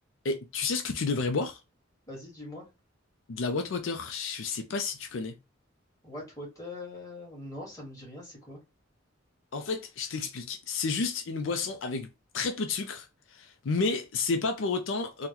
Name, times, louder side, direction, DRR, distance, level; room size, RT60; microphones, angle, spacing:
voice 1, 0.2-1.6 3.3-5.4 9.5-12.1 12.3-15.3, left 4 dB, 75° left, 0.5 m, -31 dB
voice 2, 2.1-2.7 6.0-8.6, left 2 dB, 20° left, 1.8 m, -42 dB
3.8 x 2.1 x 2.9 m
head